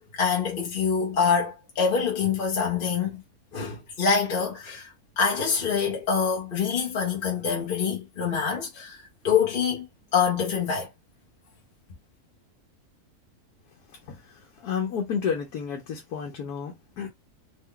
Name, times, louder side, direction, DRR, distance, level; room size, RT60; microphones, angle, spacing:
voice 1, 0.1-3.2 3.5-9.9 10.1-10.9, left 6 dB, 45° left, 0.8 m, -25 dB
voice 2, 13.9-17.1, left 6 dB, 80° left, 1.3 m, -31 dB
3.2 x 2.2 x 3.6 m
omnidirectional pair, 1.6 m